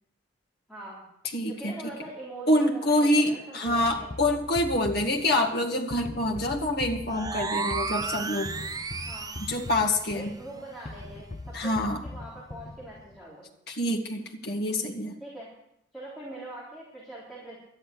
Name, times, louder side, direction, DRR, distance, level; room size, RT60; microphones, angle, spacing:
voice 1, 0.7-1.0 1.5-4.1 8.9-9.3 10.1-11.7 12.0-13.5 15.2-15.5 15.9-17.6, right 1 dB, ahead, -8 dB, 3.5 m, -43 dB
voice 2, 1.3-1.8 2.5-8.5 9.5-10.3 11.5-12.0 13.7-15.1, left 1 dB, 55° left, 2 dB, 2.0 m, -26 dB
sound 1, 3.7-13.2, left 2 dB, 40° left, 0.7 m, -41 dB
sound 2, 7.1-9.8, right 4 dB, 20° right, 0.6 m, -33 dB
12.5 x 10.0 x 7.0 m, 0.78 s
head